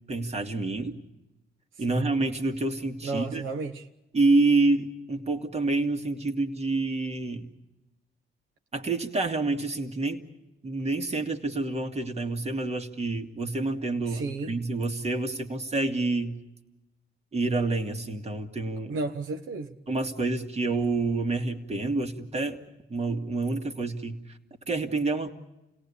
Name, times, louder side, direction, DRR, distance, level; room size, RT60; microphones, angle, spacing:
voice 1, 0.1-1.0 1.8-3.4 4.1-7.5 8.7-10.2 10.6-16.4 17.3-19.0 19.9-22.6 22.9-24.2 24.7-25.3, right 3 dB, 35° right, 2.3 m, -28 dB
voice 2, 1.8-2.1 3.0-3.9 14.1-14.6 18.9-19.8, right 3 dB, 80° right, 1.3 m, -33 dB
29.5 x 17.5 x 8.5 m
cardioid pair, 90°, 20 cm